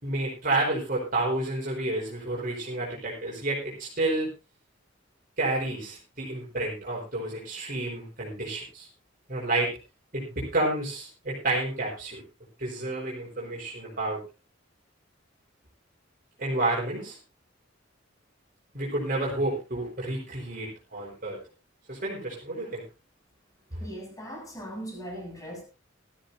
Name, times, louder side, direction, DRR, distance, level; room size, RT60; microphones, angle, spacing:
voice 1, 0.0-4.3 5.4-8.9 9.3-9.7 10.1-12.2 12.6-14.2 16.4-17.2 18.7-21.4 21.9-22.8 23.7-23.8, right 2 dB, 45° right, 4.3 m, -30 dB
voice 2, 23.8-25.6, equal, 20° left, 6.6 m, -39 dB
19.0 x 13.5 x 2.6 m
head